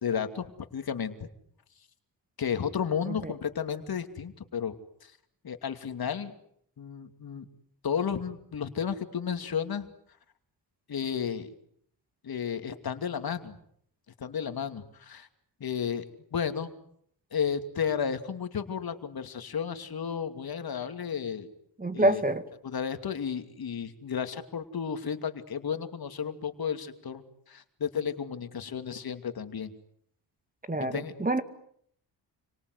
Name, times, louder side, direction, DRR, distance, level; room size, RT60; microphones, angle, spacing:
voice 1, 0.0-1.3 2.4-4.7 5.0-5.1 5.4-6.3 6.8-7.5 7.8-9.9 10.9-11.5 12.2-13.6 14.2-15.3 15.6-16.0 16.3-16.7 17.3-21.5 21.9-22.2 22.6-29.7 30.9-31.1, left 7 dB, 55° left, 8 dB, 2.8 m, -33 dB
voice 2, 21.8-22.4 30.7-31.4, right 1 dB, 20° right, 11 dB, 2.0 m, -27 dB
30.0 x 24.5 x 8.1 m, 0.68 s
cardioid pair, 85°, 43 cm